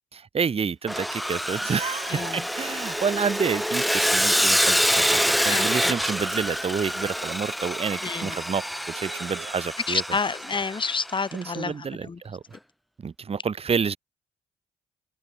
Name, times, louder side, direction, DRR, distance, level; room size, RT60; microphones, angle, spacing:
voice 1, 0.1-8.6 8.9-10.0 11.3-12.4 13.0-14.0, right 6 dB, 35° right, 1.3 m, -29 dB
Sawing, 0.9-11.1, equal, ahead, 1.5 m, -26 dB
voice 2, 2.1-2.5 5.5-5.9 8.0-8.4 9.9-12.2, left 4 dB, 30° left, 1.1 m, -29 dB
sound 1, 2.6-4.2 5.5-7.3 8.8-9.5, right 13 dB, 70° right, 4.3 m, -51 dB
hypercardioid pair, 55°, 17 cm